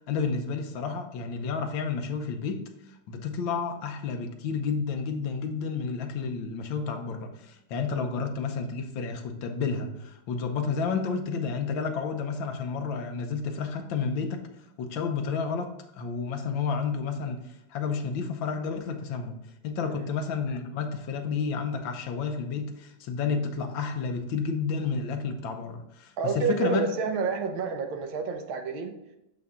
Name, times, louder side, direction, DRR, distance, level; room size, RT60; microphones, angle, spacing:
voice 1, 0.1-2.7 3.1-14.5 14.8-19.4 19.6-26.9, left 5 dB, 75° left, 6 dB, 1.5 m, -31 dB
voice 2, 26.2-28.9, right 5 dB, 80° right, 4 dB, 1.7 m, -29 dB
6.7 x 5.8 x 3.7 m, 0.85 s
omnidirectional pair, 2.2 m